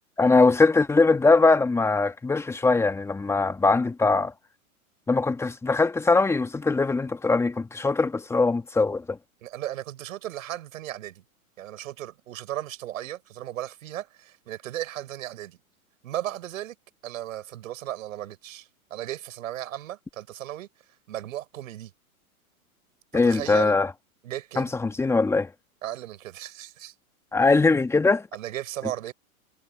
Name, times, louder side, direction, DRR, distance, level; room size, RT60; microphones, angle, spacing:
voice 1, 0.2-4.3 5.1-9.2 23.1-23.9 24.6-25.5 27.3-28.3, left 3 dB, 5° left, 1.4 m, -21 dB
voice 2, 9.4-11.2 11.6-15.6 16.0-16.8 17.0-20.7 21.1-21.9 23.1-23.7 24.2-24.7 25.8-26.9 28.3-29.1, right 13 dB, 65° right, 7.0 m, -36 dB
hypercardioid pair, 135°, 44 cm